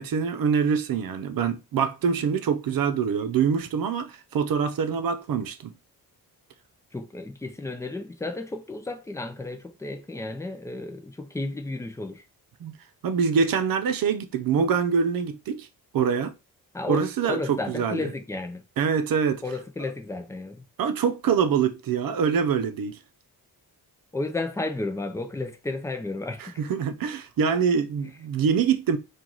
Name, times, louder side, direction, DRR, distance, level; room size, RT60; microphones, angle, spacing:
voice 1, 0.0-5.7 12.6-12.7 13.0-15.7 15.9-16.3 16.9-18.1 18.8-19.4 20.8-23.0 26.4-29.0, right 6 dB, 60° right, 0.7 m, -25 dB
voice 2, 6.9-12.2 16.7-17.0 17.3-18.6 19.4-20.6 24.1-26.5, left 2 dB, 10° left, 0.5 m, -32 dB
4.6 x 2.5 x 3.8 m
wide cardioid pair, 160°, 38 cm